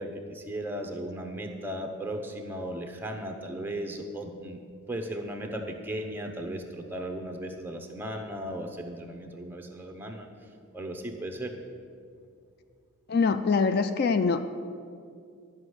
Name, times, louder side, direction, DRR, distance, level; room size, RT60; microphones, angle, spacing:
voice 1, 0.0-4.6 4.9-10.3 10.7-11.6, right 1 dB, 10° right, 3 dB, 0.7 m, -36 dB
voice 2, 13.1-14.4, left 5 dB, 45° left, 10 dB, 0.3 m, -24 dB
12.0 x 5.3 x 7.9 m, 2.4 s
head